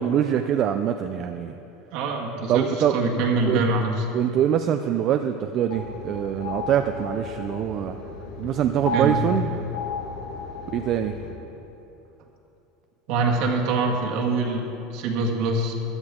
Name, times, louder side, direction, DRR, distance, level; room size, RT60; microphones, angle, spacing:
voice 1, 0.0-1.5 2.5-3.7 4.1-8.0 8.4-9.5 10.7-11.2, right 9 dB, 45° right, 7 dB, 0.5 m, -24 dB
voice 2, 1.9-4.0 8.9-9.2 13.1-15.7, right 3 dB, 65° right, 1 dB, 1.8 m, -24 dB
sound 1, 5.7-11.3, left 1 dB, 70° left, 1.7 m, -33 dB
16.0 x 10.5 x 3.7 m, 2.9 s
supercardioid pair, 130°, 0 cm